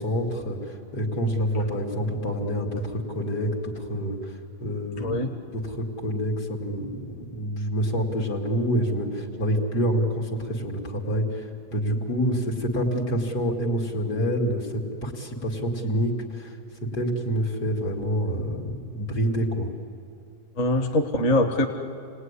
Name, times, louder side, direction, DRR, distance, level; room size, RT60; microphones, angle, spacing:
voice 1, 0.0-16.6 16.9-19.7, equal, 80° left, -1 dB, 3.4 m, -27 dB
voice 2, 5.0-5.3 20.6-21.7, left 1 dB, 50° left, 3 dB, 1.8 m, -23 dB
29.0 x 19.5 x 9.9 m, 2.6 s
omnidirectional pair, 1.7 m